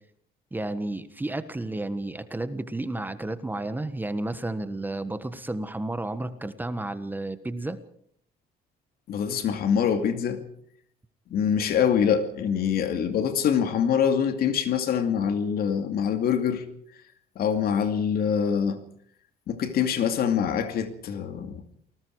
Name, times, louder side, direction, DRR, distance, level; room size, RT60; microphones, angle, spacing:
voice 1, 0.5-7.8, right 2 dB, 10° right, 1.4 m, -32 dB
voice 2, 9.1-10.4 11.3-16.6 17.4-18.8 19.5-21.6, left 7 dB, 65° left, 2.5 m, -24 dB
28.5 x 19.5 x 4.8 m
cardioid pair, 110°, 17 cm